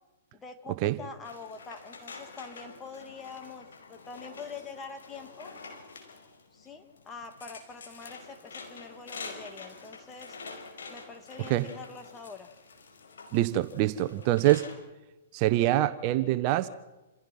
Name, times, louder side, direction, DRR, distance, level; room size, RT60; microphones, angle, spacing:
voice 1, 0.3-5.5 6.5-10.4 10.9-12.5, left 4 dB, 15° left, 8 dB, 2.6 m, -45 dB
sound 1, 1.2-14.7, left 4 dB, 80° left, 5.0 m, -47 dB
voice 2, 13.3-14.6 15.3-16.7, right 15 dB, 45° right, 12 dB, 1.2 m, -25 dB
28.5 x 16.5 x 5.7 m, 1.1 s
hypercardioid pair, 125°, 0 cm